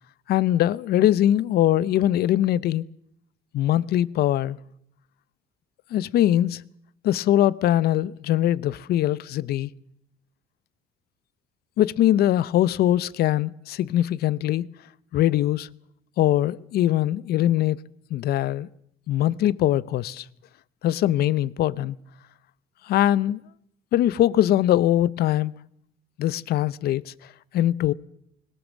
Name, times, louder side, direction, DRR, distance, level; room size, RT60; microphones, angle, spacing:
voice 1, 0.3-2.9 3.5-4.6 5.9-6.6 7.0-9.7 11.8-14.7 15.1-15.7 16.2-17.8 18.1-18.7 19.1-20.2 20.8-22.0 22.9-23.4 23.9-25.5 26.2-27.1 27.5-27.9, left 12 dB, 70° left, 0.8 m, -22 dB
21.0 x 19.5 x 7.4 m
cardioid pair, 110°, 17 cm